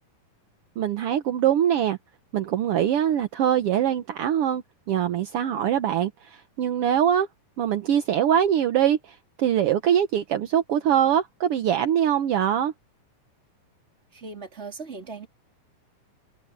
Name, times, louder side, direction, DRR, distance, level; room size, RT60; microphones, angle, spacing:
voice 1, 0.8-2.0 2.3-7.3 7.6-12.7, right 10 dB, 65° right, 1.5 m, -23 dB
voice 2, 14.1-15.3, right 4 dB, 20° right, 3.0 m, -38 dB
open air
omnidirectional pair, 3.8 m